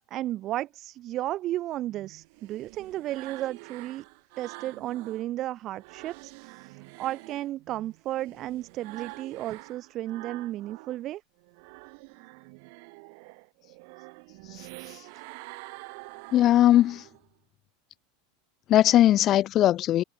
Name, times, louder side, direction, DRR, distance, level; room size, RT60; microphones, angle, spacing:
voice 1, 0.0-4.0 4.4-11.2, right 14 dB, 45° right, 0.7 m, -34 dB
sound 1, 1.8-5.3 5.6-11.0 11.4-17.3, right 34 dB, 65° right, 6.5 m, -47 dB
voice 2, 16.3-17.0 18.7-20.0, left 13 dB, 40° left, 0.7 m, -20 dB
supercardioid pair, 125°, 0 cm